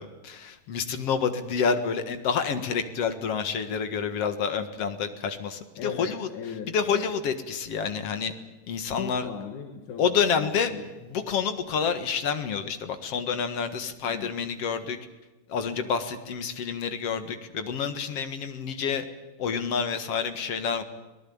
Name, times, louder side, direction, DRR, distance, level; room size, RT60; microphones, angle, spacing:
voice 1, 0.0-6.3 6.7-8.3 8.7-9.3 10.0-10.7 11.0-15.0 15.5-19.0 19.4-20.8, left 6 dB, 55° left, 9 dB, 2.4 m, -28 dB
voice 2, 5.8-7.1 9.0-10.9 14.1-14.3, left 8 dB, 70° left, 6 dB, 3.0 m, -37 dB
25.5 x 18.5 x 8.7 m, 1.2 s
omnidirectional pair, 3.7 m